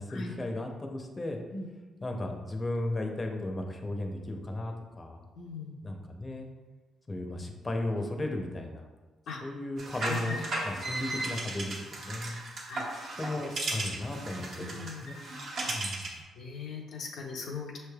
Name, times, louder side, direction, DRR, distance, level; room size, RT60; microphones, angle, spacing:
voice 1, 0.0-1.4 2.0-5.2 5.8-6.5 7.1-8.8 9.4-10.4 10.6-12.3 13.2-15.2 15.7-16.1, left 1 dB, 25° left, 3 dB, 0.6 m, -35 dB
voice 2, 5.3-5.9 9.3-9.4 10.1-10.4 12.7-12.9 13.2-13.7 14.3-15.2 15.6-16.0 16.4-17.8, left 4 dB, 75° left, -2 dB, 0.6 m, -40 dB
sound 1, 9.8-16.2, right 2 dB, 60° right, 0.9 m, -36 dB
5.9 x 3.3 x 2.3 m, 1.3 s
cardioid pair, 90°, 0 cm